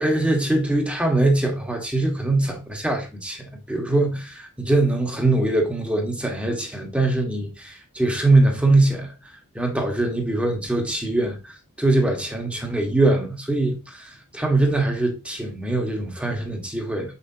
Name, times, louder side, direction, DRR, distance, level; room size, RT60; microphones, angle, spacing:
voice 1, 0.0-9.1 9.5-11.4 11.8-17.1, right 2 dB, 5° right, 1.5 m, -22 dB
7.8 x 5.7 x 2.8 m
head